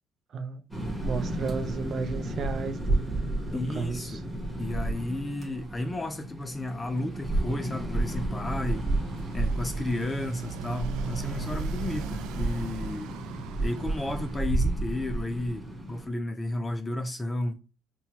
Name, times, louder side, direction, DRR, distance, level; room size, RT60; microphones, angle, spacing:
sound 1, 0.7-16.1, right 2 dB, 5° right, 1.2 m, -32 dB
voice 1, 1.0-3.1 3.5-4.2, right 4 dB, 40° right, 0.6 m, -33 dB
voice 2, 3.5-4.2 4.6-8.9 9.3-13.2 13.6-17.6, left 1 dB, 15° left, 0.4 m, -33 dB
Motorcycle, 8.4-14.5, right 9 dB, 90° right, 0.3 m, -40 dB
5.5 x 2.2 x 2.8 m
cardioid pair, 145°, 0 cm